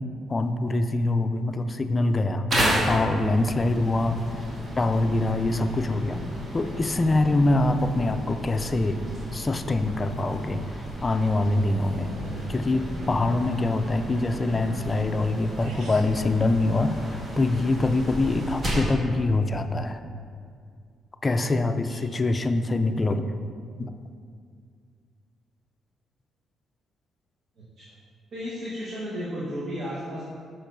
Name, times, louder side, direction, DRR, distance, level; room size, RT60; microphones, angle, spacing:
voice 1, 0.3-2.5 2.9-4.2 4.8-6.2 6.5-9.0 9.3-10.6 11.0-12.1 12.5-20.0 21.2-23.3 23.8-23.9, left 2 dB, 25° left, 8 dB, 0.3 m, -24 dB
sound 1, 2.5-19.0, equal, 35° right, 1.5 m, -33 dB
sound 2, 15.6-16.2, right 3 dB, 75° right, 0.8 m, -44 dB
voice 2, 28.3-30.2, equal, 60° right, -7 dB, 1.2 m, -34 dB
6.4 x 6.1 x 2.6 m, 2.2 s
cardioid pair, 90°, 0 cm